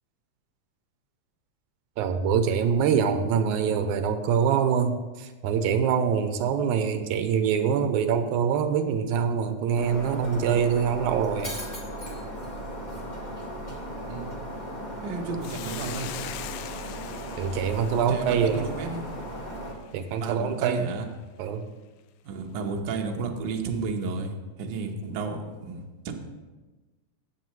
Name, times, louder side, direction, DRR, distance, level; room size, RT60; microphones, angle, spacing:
voice 1, 2.0-11.5 17.4-18.7 19.9-20.9 21.4-21.6, right 7 dB, 85° right, 8 dB, 2.1 m, -24 dB
Shatter, 9.8-19.7, equal, 20° left, 1.2 m, -36 dB
voice 2, 15.0-16.1 18.1-19.0 20.2-21.0 22.2-24.3 24.6-26.1, right 4 dB, 65° right, 2 dB, 1.1 m, -32 dB
Hiss, 15.4-19.9, left 12 dB, 90° left, 1.4 m, -42 dB
17.0 x 7.4 x 3.1 m, 1.2 s
omnidirectional pair, 3.4 m